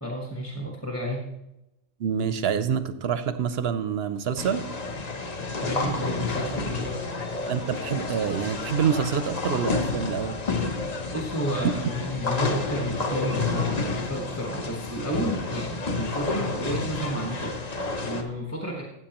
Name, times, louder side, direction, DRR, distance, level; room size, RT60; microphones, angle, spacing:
voice 1, 0.0-1.2 5.6-7.0 11.1-18.8, right 1 dB, 10° left, -1 dB, 1.2 m, -31 dB
voice 2, 2.0-4.7 7.5-10.4 11.6-11.7, right 7 dB, 60° right, 12 dB, 0.7 m, -26 dB
sound 1, 4.4-18.2, left 3 dB, 35° left, 0.8 m, -30 dB
14.5 x 7.7 x 3.0 m, 0.92 s
omnidirectional pair, 1.3 m